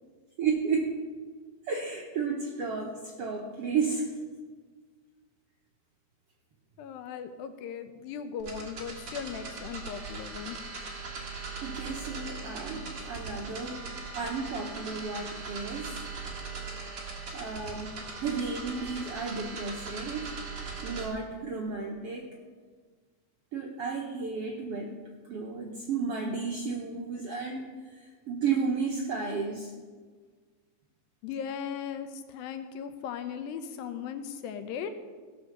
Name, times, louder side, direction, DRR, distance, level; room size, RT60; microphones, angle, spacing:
voice 1, 0.4-1.0 1.6-4.1 11.6-13.8 14.2-16.0 17.3-20.3 20.8-22.4 23.5-25.0 25.2-29.7, right 5 dB, 75° right, 0 dB, 1.4 m, -33 dB
voice 2, 6.8-10.6 18.1-18.2 31.2-34.9, left 7 dB, 90° left, 9 dB, 2.6 m, -38 dB
sound 1, 8.4-21.1, right 4 dB, 40° right, 2.0 m, -40 dB
16.5 x 5.6 x 6.6 m, 1.5 s
omnidirectional pair, 4.0 m